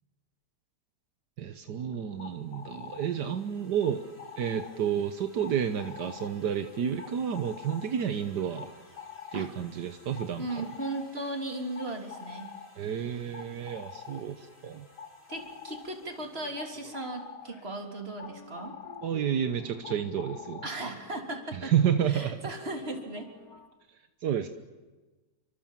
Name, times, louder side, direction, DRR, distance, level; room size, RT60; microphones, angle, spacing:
voice 1, 1.4-4.0 4.4-8.7 9.3-10.7 12.8-14.9 19.0-20.7 21.5-22.4 23.9-24.5, right 8 dB, 80° right, 8 dB, 1.7 m, -30 dB
sound 1, 1.8-21.2, left 7 dB, 80° left, 2.7 m, -48 dB
sound 2, 2.2-17.3, left 1 dB, 15° left, 6.9 m, -60 dB
voice 2, 10.4-12.5 15.3-18.7 20.6-21.7 22.1-23.3, right 2 dB, 35° right, 3 dB, 3.6 m, -37 dB
sound 3, 15.3-17.1 17.4-23.7, left 4 dB, 65° left, 2.3 m, -52 dB
29.0 x 25.0 x 7.5 m, 1.2 s
omnidirectional pair, 1.8 m